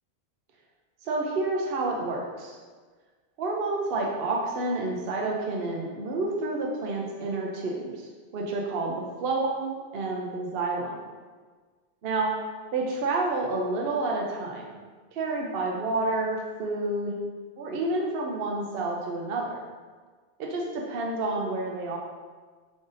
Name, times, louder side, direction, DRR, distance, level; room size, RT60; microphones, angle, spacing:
voice 1, 1.0-2.6 3.4-11.0 12.0-12.3 12.7-14.8 15.1-17.2 17.6-19.6 20.4-22.0, right 2 dB, 65° right, -1 dB, 0.8 m, -29 dB
4.8 x 3.8 x 2.6 m, 1.5 s
omnidirectional pair, 1.1 m